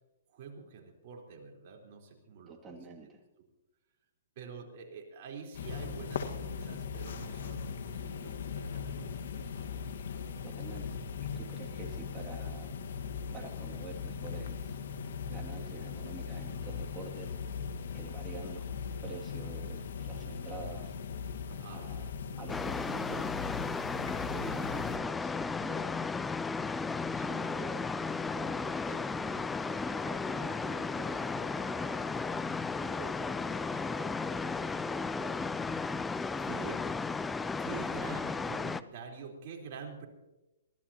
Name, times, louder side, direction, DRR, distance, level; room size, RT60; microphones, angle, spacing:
voice 1, 0.3-2.8 4.4-9.7 11.5-11.6 21.5-21.9 28.9-29.0 33.5-33.9 36.4-36.8 37.6-40.1, right 5 dB, 50° right, 0 dB, 4.1 m, -47 dB
voice 2, 2.5-3.2 5.8-6.0 10.4-10.9 11.2-12.7 13.3-14.8 15.2-17.3 17.9-18.7 19.0-21.0 21.7-22.1 22.4-23.3 24.3-26.4 27.1-27.9 28.3-32.0 32.8-35.5, right 4 dB, 20° right, 0 dB, 2.5 m, -47 dB
sound 1, 5.5-25.0, left 6 dB, 70° left, 1.6 m, -39 dB
sound 2, 22.5-38.8, left 4 dB, 10° left, 0.4 m, -34 dB
23.5 x 15.5 x 3.0 m, 1.0 s
hypercardioid pair, 140°, 0 cm